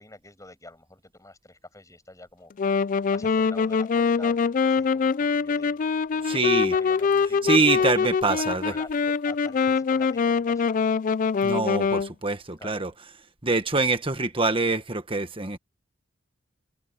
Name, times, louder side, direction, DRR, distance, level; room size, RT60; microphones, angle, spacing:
voice 1, 0.0-2.7 3.1-7.5 7.8-10.7 12.6-13.0, left 2 dB, 15° left, 7.6 m, -46 dB
Wind instrument woodwind instrument, 2.6-12.1, left 5 dB, 40° left, 0.3 m, -24 dB
voice 2, 6.2-6.7 7.4-8.7 11.4-12.9 13.4-15.6, right 3 dB, 25° right, 1.5 m, -24 dB
head